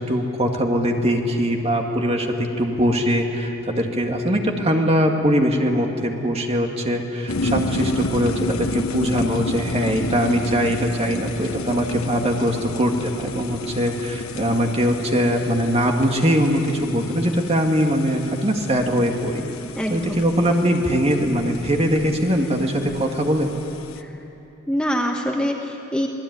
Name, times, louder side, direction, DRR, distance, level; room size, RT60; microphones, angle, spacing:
voice 1, 0.0-2.3 2.6-19.5 19.9-23.5, equal, 30° right, 2 dB, 2.2 m, -21 dB
sound 1, 7.3-24.0, left 2 dB, 85° left, 1.1 m, -31 dB
voice 2, 19.8-20.2 24.0-24.1 24.7-26.1, equal, 5° left, 1 dB, 1.2 m, -24 dB
27.5 x 19.0 x 9.7 m, 3.0 s
head